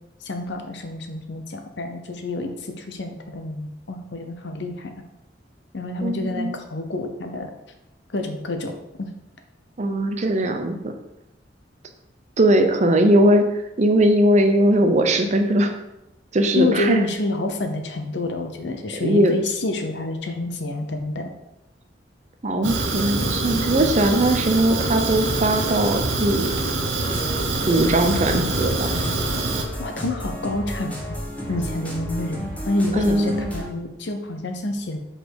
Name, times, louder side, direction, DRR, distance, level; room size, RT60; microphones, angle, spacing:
voice 1, 0.2-4.9 5.7-7.5 8.1-8.7 9.0-9.1 16.5-21.3 29.8-31.2 31.5-35.0, left 2 dB, 70° left, 5 dB, 0.8 m, -28 dB
voice 2, 6.0-6.6 9.8-10.9 12.4-13.4 13.8-15.7 16.3-17.0 19.0-19.3 22.4-26.5 27.7-28.9 32.9-33.5, right 1 dB, 40° right, 6 dB, 0.6 m, -19 dB
Fire, 22.6-29.6, right 2 dB, 90° right, 0.9 m, -25 dB
sound 1, 27.0-33.7, equal, 10° left, 1.2 m, -32 dB
5.2 x 4.1 x 4.7 m, 0.91 s
head